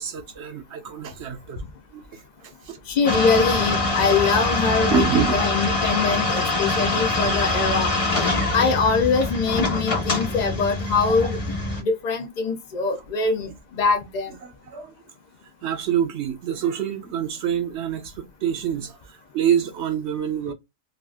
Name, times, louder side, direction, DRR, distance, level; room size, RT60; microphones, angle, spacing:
voice 1, 0.0-1.6 1.9-2.8 4.9-5.3 14.4-14.9 15.6-20.5, right 9 dB, 60° right, 0.8 m, -26 dB
voice 2, 2.9-7.9 8.5-11.4 11.8-13.5 13.8-14.3, left 5 dB, 85° left, 0.3 m, -23 dB
sound 1, 3.0-11.8, left 2 dB, 30° left, 0.6 m, -24 dB
3.5 x 2.4 x 2.3 m
omnidirectional pair, 1.5 m